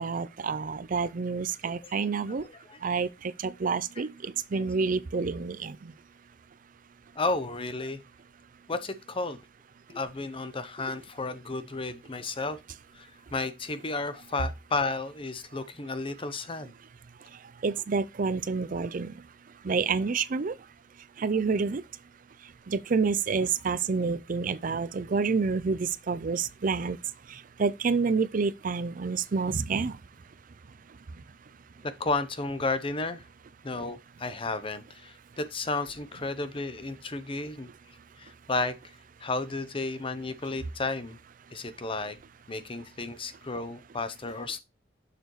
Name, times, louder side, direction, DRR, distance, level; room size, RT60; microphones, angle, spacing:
voice 1, 0.0-2.4 2.8-3.1 3.4-4.1 4.5-5.7 17.6-19.1 19.7-20.5 21.2-21.8 22.7-25.8 26.1-27.0 27.6-29.9, right 4 dB, 50° right, 0.5 m, -28 dB
voice 2, 2.4-2.8 4.0-4.1 4.5-4.7 7.2-8.0 8.7-9.4 9.9-12.6 12.9-16.7 31.8-33.2 33.6-37.7 38.2-38.8 39.2-41.2 41.5-42.2 42.5-44.6, left 3 dB, 30° left, 0.8 m, -33 dB
6.8 x 6.5 x 3.2 m
head